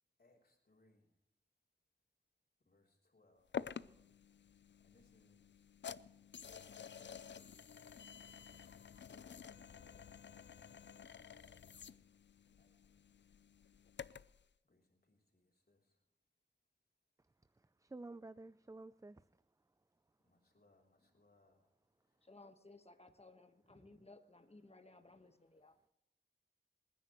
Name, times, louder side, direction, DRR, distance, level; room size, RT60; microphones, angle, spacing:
voice 1, 0.2-1.0 2.7-3.5 4.8-5.5 6.5-7.6 9.1-11.5 11.8-12.0 12.5-13.0 14.7-14.8 15.1-15.8 20.2-21.6, left 2 dB, 55° left, 3.4 m, -73 dB
sound 1, 3.5-14.4, left 7 dB, 75° left, 0.5 m, -51 dB
voice 2, 17.8-19.2, right 2 dB, 15° right, 0.4 m, -51 dB
voice 3, 22.2-25.8, left 2 dB, 35° left, 1.4 m, -60 dB
27.5 x 10.0 x 3.1 m
wide cardioid pair, 60°, 19 cm